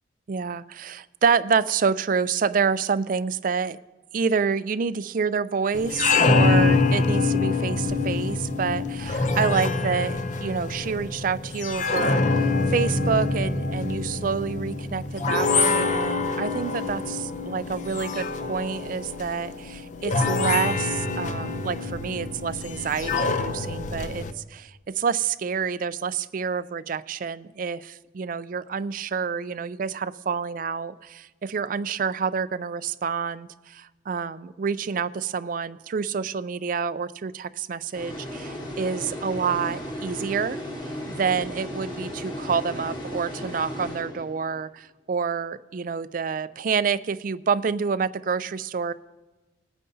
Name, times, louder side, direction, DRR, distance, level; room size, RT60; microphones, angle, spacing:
voice 1, 0.3-3.8 4.1-40.6 41.1-48.9, right 6 dB, 45° right, 15 dB, 0.4 m, -28 dB
sound 1, 5.7-24.3, left 3 dB, 40° left, 0.5 m, -25 dB
sound 2, 37.9-44.6, equal, 20° left, 1.4 m, -35 dB
21.0 x 9.2 x 2.7 m, 1.2 s
head